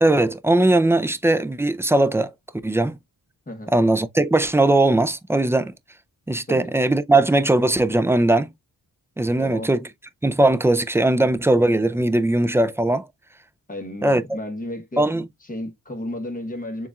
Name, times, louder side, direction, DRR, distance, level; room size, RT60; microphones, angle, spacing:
voice 1, 0.0-2.3 2.6-3.0 3.7-5.7 6.3-8.5 9.2-9.9 10.2-13.1 14.0-14.2 15.0-15.3, right 2 dB, 10° right, 0.3 m, -19 dB
voice 2, 9.4-9.7 13.7-16.9, left 1 dB, 25° left, 1.1 m, -33 dB
6.8 x 2.4 x 2.3 m
wide cardioid pair, 160°, 36 cm